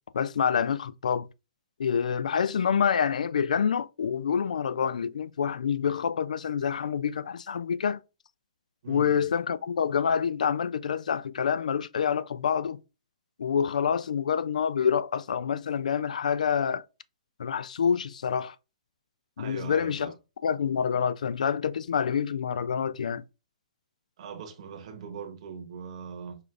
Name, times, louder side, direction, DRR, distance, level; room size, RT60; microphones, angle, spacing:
voice 1, 0.1-1.3 1.8-8.0 8.9-12.8 13.4-16.8 17.4-18.6 19.4-20.1 20.4-23.2, left 7 dB, 75° left, 0.3 m, -27 dB
voice 2, 8.8-9.3 19.4-20.1 24.2-26.4, right 6 dB, 55° right, 1.0 m, -41 dB
4.8 x 2.5 x 2.5 m
hypercardioid pair, 130°, 4 cm